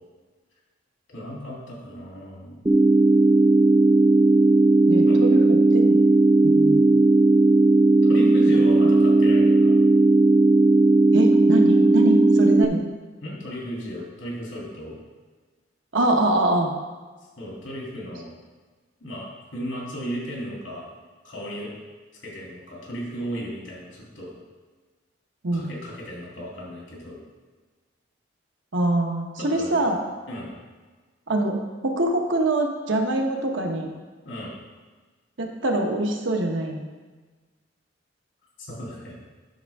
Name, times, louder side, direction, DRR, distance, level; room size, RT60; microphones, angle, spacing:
voice 1, 1.1-2.6 5.0-5.2 8.0-9.8 13.2-15.0 17.4-18.3 19.0-20.9 21.2-21.7 22.2-24.3 25.5-27.2 29.4-29.8 30.3-30.6 34.2-34.5 38.6-39.2, equal, 90° left, -4 dB, 2.8 m, -35 dB
sound 1, 2.7-12.7, right 2 dB, 15° right, 0.4 m, -16 dB
voice 2, 4.9-6.0 6.4-7.0 11.1-12.8 15.9-16.7 25.4-25.7 28.7-30.0 31.3-31.6 31.8-33.9 35.4-36.8, right 1 dB, 75° right, 2 dB, 1.0 m, -24 dB
10.0 x 6.2 x 3.5 m, 1.3 s
head